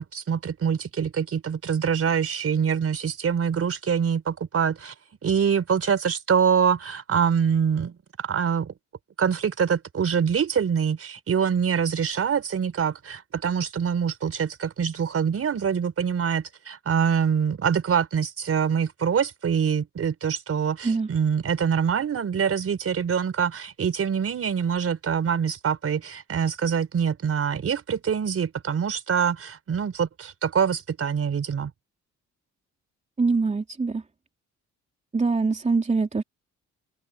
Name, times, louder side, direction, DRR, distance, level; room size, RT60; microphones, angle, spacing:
voice 1, 0.0-4.9 5.2-8.7 9.2-31.7, right 7 dB, 50° right, 4.6 m, -25 dB
voice 2, 33.2-34.0 35.1-36.2, right 4 dB, 25° right, 3.2 m, -23 dB
open air
cardioid pair, 90°, 30 cm